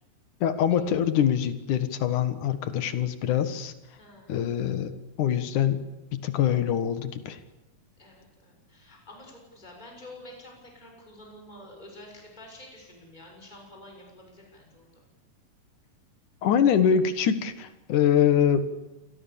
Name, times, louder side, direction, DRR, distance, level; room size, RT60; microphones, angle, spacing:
voice 1, 0.4-3.7 4.3-5.8 6.1-7.4 16.4-18.7, left 9 dB, 65° left, 11 dB, 2.9 m, -24 dB
voice 2, 4.0-4.4 8.0-15.0, left 1 dB, 10° left, 1 dB, 6.9 m, -48 dB
28.0 x 22.0 x 7.2 m, 1.0 s
omnidirectional pair, 4.0 m